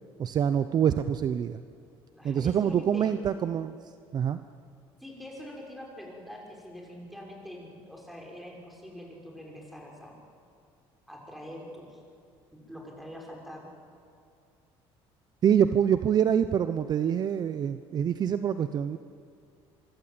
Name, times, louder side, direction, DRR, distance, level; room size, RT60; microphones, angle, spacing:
voice 1, 0.2-1.6 2.2-3.8 4.1-4.4 15.4-19.0, right 8 dB, 40° right, 11 dB, 0.8 m, -25 dB
voice 2, 2.1-3.1 5.0-10.2 11.1-12.0 12.7-13.7, left 1 dB, ahead, -1 dB, 6.3 m, -44 dB
25.5 x 24.0 x 8.8 m, 2.3 s
cardioid pair, 125°, 10 cm